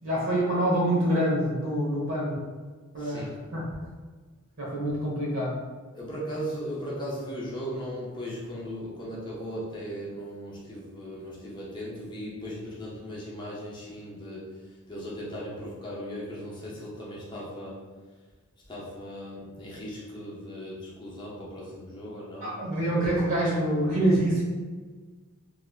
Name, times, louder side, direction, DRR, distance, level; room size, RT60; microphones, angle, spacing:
voice 1, 0.0-2.4 2.9-3.2 3.5-3.6 4.6-5.6 22.4-24.4, right 1 dB, 65° right, -5 dB, 1.2 m, -26 dB
voice 2, 3.0-3.3 5.9-17.9 18.7-22.6, equal, 20° left, -6 dB, 0.6 m, -37 dB
3.3 x 3.0 x 2.4 m, 1.4 s
head